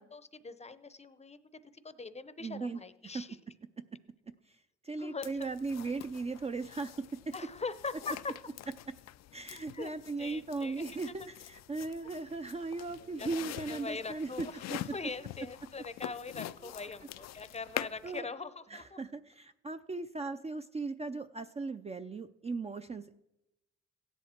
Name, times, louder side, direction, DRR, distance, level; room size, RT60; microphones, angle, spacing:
voice 1, 0.0-3.4 5.0-5.5 7.3-8.3 9.5-11.3 13.0-19.0, left 4 dB, 20° left, 13 dB, 0.7 m, -42 dB
voice 2, 2.4-2.8 3.1-3.2 4.8-7.3 9.3-14.3 14.7-14.8 18.0-18.3 18.7-23.1, right 3 dB, 20° right, 8 dB, 0.4 m, -37 dB
sound 1, 5.2-18.2, left 13 dB, 60° left, 0.4 m, -45 dB
16.0 x 10.5 x 4.4 m, 0.94 s
cardioid pair, 90°, 30 cm